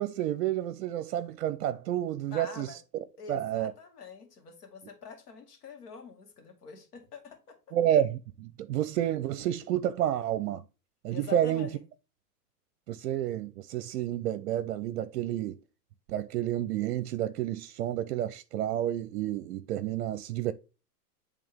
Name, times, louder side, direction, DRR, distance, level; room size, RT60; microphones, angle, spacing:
voice 1, 0.0-2.8 3.3-3.7 7.7-10.6 11.0-11.7 12.9-15.6 16.1-20.5, right 11 dB, 65° right, 0.6 m, -30 dB
voice 2, 2.3-2.8 3.2-7.6 11.1-11.8, left 5 dB, 75° left, 2.2 m, -45 dB
8.5 x 3.5 x 3.5 m
hypercardioid pair, 120°, 48 cm